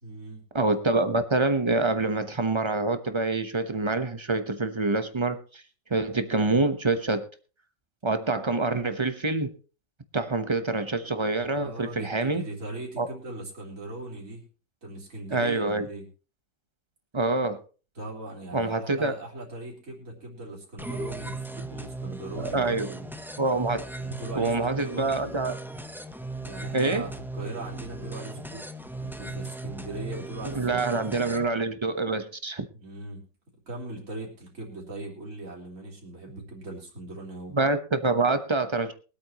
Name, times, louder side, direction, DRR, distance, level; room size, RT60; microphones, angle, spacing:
voice 1, 0.0-0.4 11.4-14.4 14.8-16.1 18.0-23.1 24.0-25.4 26.4-31.3 32.8-33.2 33.7-37.5, right 2 dB, 45° right, -2 dB, 3.9 m, -39 dB
voice 2, 0.5-5.6 5.9-7.2 8.0-9.5 10.1-12.5 13.0-13.1 15.3-15.9 17.1-17.6 18.5-19.1 22.4-22.9 23.4-23.8 24.3-25.5 26.7-27.1 30.4-32.6 37.5-38.9, right 3 dB, 20° right, 9 dB, 0.8 m, -26 dB
sound 1, 20.8-31.4, right 2 dB, 5° right, 0.3 m, -37 dB
23.0 x 8.7 x 3.0 m, 0.35 s
omnidirectional pair, 1.9 m